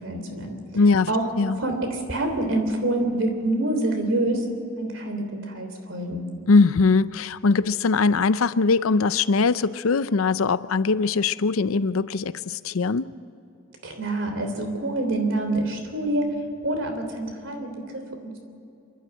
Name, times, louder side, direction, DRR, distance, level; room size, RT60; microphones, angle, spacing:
voice 1, 0.0-0.6 1.1-1.2 1.6-4.5 4.8-6.3 13.8-16.3 16.6-18.4, right 2 dB, 65° right, 5 dB, 3.3 m, -26 dB
voice 2, 0.7-1.6 6.5-13.1, left 4 dB, 85° left, 15 dB, 0.6 m, -21 dB
27.5 x 12.0 x 9.0 m, 2.7 s
head